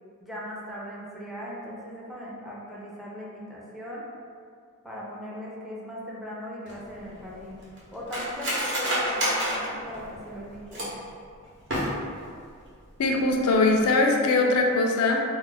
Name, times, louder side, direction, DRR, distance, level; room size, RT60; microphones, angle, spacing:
voice 1, 0.2-4.0 4.8-7.6 7.9-10.9, equal, ahead, -5 dB, 0.4 m, -39 dB
Cutlery silverware, 6.7-11.1 11.6-12.3 12.6-12.7 13.0-13.4 13.7-13.9, equal, 60° right, 0.8 m, -30 dB
voice 2, 13.0-15.2, left 2 dB, 75° left, 1 dB, 0.4 m, -21 dB
2.3 x 2.1 x 3.9 m, 2.3 s
head